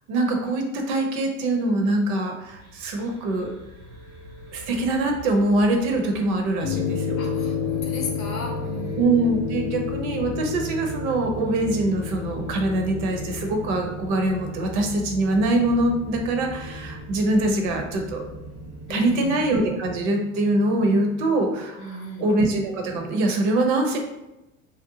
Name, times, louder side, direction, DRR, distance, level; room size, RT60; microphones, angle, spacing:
voice 1, 0.1-3.6 4.5-7.2 9.0-18.2 18.9-24.0, right 2 dB, 55° right, 3 dB, 0.7 m, -23 dB
sound 1, 2.4-19.9, equal, 90° right, 1.0 m, -42 dB
sound 2, 6.6-21.2, left 5 dB, 45° left, 0.5 m, -33 dB
voice 2, 7.2-9.1 18.9-19.5 21.8-22.3, left 2 dB, 80° left, 1 dB, 0.8 m, -35 dB
2.8 x 2.0 x 2.7 m, 0.92 s
hypercardioid pair, 80°, 41 cm